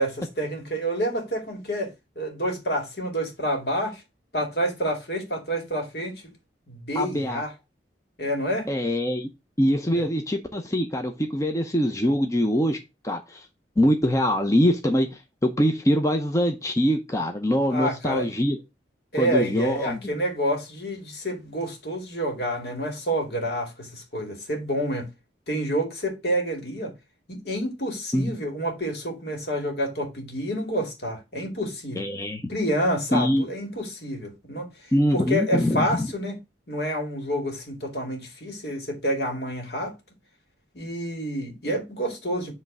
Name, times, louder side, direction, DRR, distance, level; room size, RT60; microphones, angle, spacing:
voice 1, 0.0-1.9 2.2-4.0 4.3-6.2 6.7-7.5 8.2-8.7 9.9-10.1 17.7-18.3 19.1-25.1 25.5-26.9 27.3-32.0 32.5-34.7 35.1-36.4 36.7-39.9 40.7-42.5, equal, 60° left, 2.3 m, -28 dB
voice 2, 6.9-7.4 8.7-9.3 9.6-12.8 13.0-13.5 13.8-18.6 19.2-20.1 28.1-28.3 32.0-32.4 33.1-33.5 34.9-36.1, equal, 20° left, 0.7 m, -23 dB
7.9 x 3.3 x 6.0 m
head